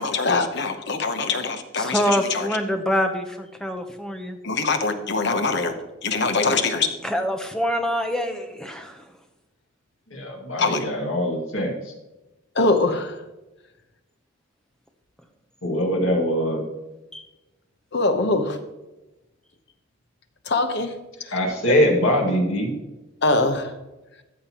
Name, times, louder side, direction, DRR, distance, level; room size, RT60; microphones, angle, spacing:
voice 1, 0.0-2.5 4.4-5.7 6.0-6.9 10.6-10.8 12.5-13.2 17.9-18.6 20.5-20.9 21.2-21.3 21.7-21.8 23.2-23.7, left 3 dB, 50° left, 7 dB, 0.9 m, -23 dB
voice 2, 1.8-4.4 7.0-9.0 17.1-17.2, equal, 5° left, 5 dB, 0.8 m, -25 dB
voice 3, 10.1-11.9 15.6-16.6 21.3-22.7, equal, 70° left, 1 dB, 2.1 m, -23 dB
14.0 x 6.6 x 3.0 m, 1.0 s
head